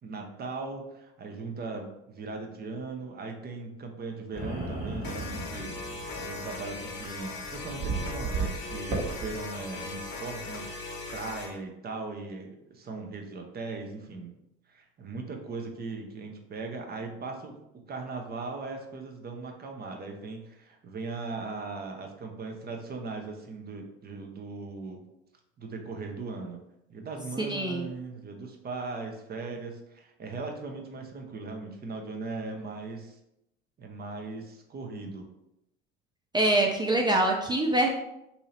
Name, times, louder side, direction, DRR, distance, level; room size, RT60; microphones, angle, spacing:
voice 1, 0.0-14.3 14.7-17.5 17.9-25.0 25.6-26.6 26.9-33.2 33.8-35.3, right 3 dB, 30° right, 3 dB, 0.8 m, -39 dB
sound 1, 4.3-9.4, right 3 dB, 50° right, 1.4 m, -35 dB
sound 2, 5.0-11.5, left 3 dB, 35° left, 1.0 m, -39 dB
voice 2, 27.4-27.9 36.3-37.9, right 1 dB, 15° right, 1 dB, 0.3 m, -24 dB
2.8 x 2.8 x 4.1 m, 0.85 s
hypercardioid pair, 75°, 32 cm